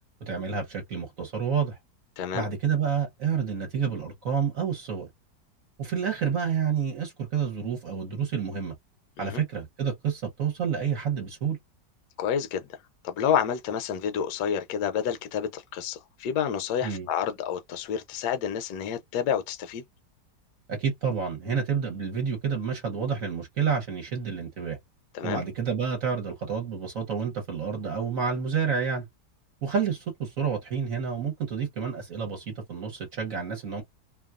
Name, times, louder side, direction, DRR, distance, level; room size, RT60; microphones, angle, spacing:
voice 1, 0.2-1.8 2.3-5.1 5.8-8.7 9.2-11.6 16.8-17.1 20.7-24.8 25.2-29.1 29.6-33.8, right 6 dB, 55° right, 1.2 m, -29 dB
voice 2, 2.2-2.5 9.2-9.4 12.2-12.6 13.0-19.8 25.1-25.4, left 8 dB, 75° left, 1.1 m, -29 dB
2.9 x 2.3 x 2.3 m
omnidirectional pair, 1.8 m